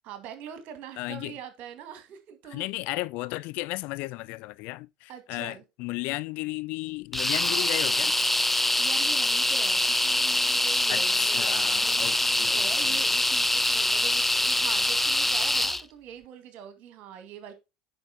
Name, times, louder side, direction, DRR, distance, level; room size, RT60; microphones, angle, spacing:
voice 1, 0.0-2.7 5.1-5.6 8.8-17.5, right 9 dB, 50° right, 2.2 m, -43 dB
voice 2, 1.0-1.4 2.5-8.2 10.9-13.0, left 21 dB, 55° left, 0.4 m, -34 dB
sound 1, 7.1-15.8, left 1 dB, 5° left, 0.5 m, -24 dB
9.6 x 5.2 x 4.2 m
hypercardioid pair, 75°, 3 cm